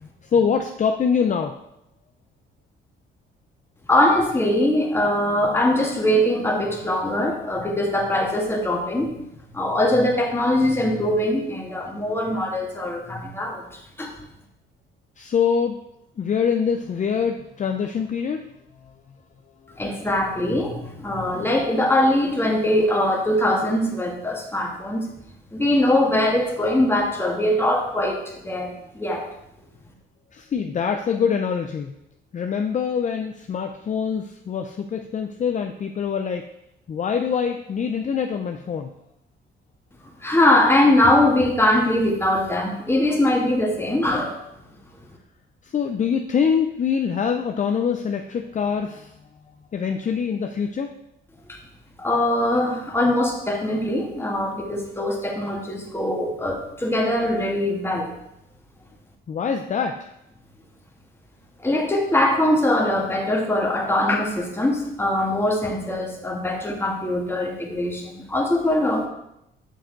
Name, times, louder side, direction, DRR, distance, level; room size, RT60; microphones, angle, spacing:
voice 1, 0.0-1.5 15.2-15.8 16.2-18.5 30.3-32.0 32.3-36.5 36.9-38.9 45.7-49.1 49.7-50.9 59.3-60.0, left 6 dB, 40° left, 5 dB, 0.5 m, -24 dB
voice 2, 3.9-9.2 9.5-13.6 14.0-14.1 19.8-25.1 25.5-29.2 40.2-44.4 51.5-51.6 52.0-58.1 61.6-69.1, left 1 dB, 10° left, 0 dB, 1.7 m, -22 dB
6.5 x 6.3 x 3.9 m, 0.82 s
cardioid pair, 90°, 20 cm